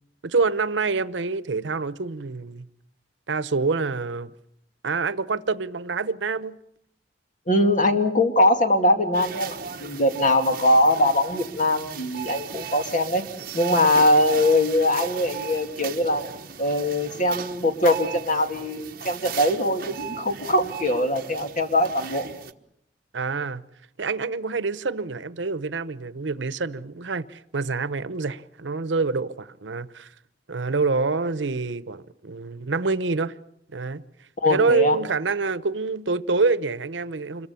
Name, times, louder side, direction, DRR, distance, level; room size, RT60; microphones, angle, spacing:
voice 1, 0.2-2.7 3.3-4.3 4.8-6.6 23.1-23.6 24.0-30.1 30.5-33.3 33.7-34.0 34.5-37.5, right 4 dB, 90° right, 0.9 m, -26 dB
voice 2, 7.5-13.2 13.5-16.3 16.6-22.3 34.4-35.0, left 1 dB, 45° left, 2.4 m, -22 dB
sound 1, 9.1-22.5, right 7 dB, 55° right, 1.2 m, -37 dB
26.5 x 22.5 x 7.0 m
head